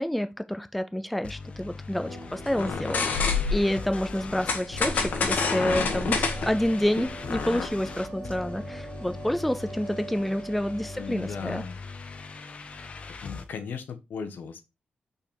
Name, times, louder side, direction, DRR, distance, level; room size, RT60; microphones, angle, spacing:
voice 1, 0.0-11.6, equal, ahead, 0.4 m, -28 dB
sound 1, 1.2-13.5, left 4 dB, 40° left, 0.7 m, -40 dB
sound 2, 2.0-11.5, right 1 dB, 25° left, 2.5 m, -43 dB
sound 3, 2.5-3.8 4.5-7.7, left 5 dB, 60° left, 1.3 m, -27 dB
voice 2, 10.9-11.7 13.2-14.6, left 6 dB, 75° left, 1.0 m, -37 dB
5.9 x 4.2 x 4.3 m
wide cardioid pair, 175°, 3 cm